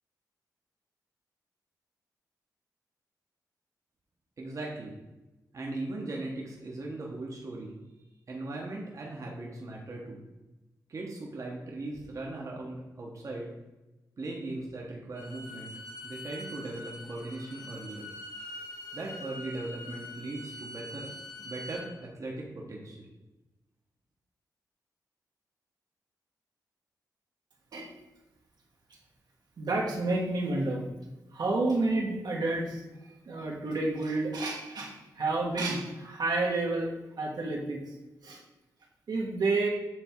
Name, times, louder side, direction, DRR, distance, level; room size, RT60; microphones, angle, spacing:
voice 1, 4.4-4.9 5.5-7.8 8.3-10.2 10.9-13.5 14.2-15.7 16.0-18.1 18.9-21.1 21.4-23.0, right 2 dB, 50° right, -2 dB, 1.1 m, -38 dB
Bowed string instrument, 15.1-21.9, left 1 dB, 80° left, 2.3 m, -44 dB
voice 2, 29.6-30.9 31.3-32.8 33.2-36.9 37.2-37.8 38.2-38.4 39.1-39.7, right 2 dB, 75° right, -1 dB, 1.4 m, -30 dB
7.7 x 3.5 x 4.5 m, 1.1 s
wide cardioid pair, 100°, 7 cm